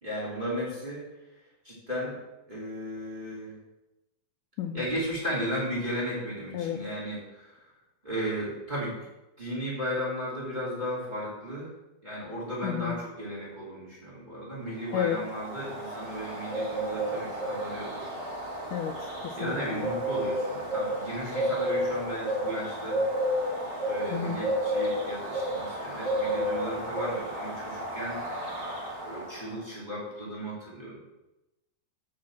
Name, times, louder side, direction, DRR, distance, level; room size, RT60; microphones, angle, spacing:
voice 1, 0.0-1.1 1.6-2.2 2.5-3.6 4.7-7.6 8.0-8.9 9.4-11.7 12.0-18.1 19.4-23.0 23.9-28.2 29.0-31.0, equal, 15° right, -6 dB, 2.4 m, -35 dB
voice 2, 12.6-13.0 14.9-15.2 18.7-19.9 24.1-24.4, left 9 dB, 85° left, 5 dB, 1.8 m, -32 dB
Bird, 14.9-29.6, equal, 30° right, 2.4 m, -32 dB
8.7 x 5.1 x 7.5 m, 0.98 s
omnidirectional pair, 4.4 m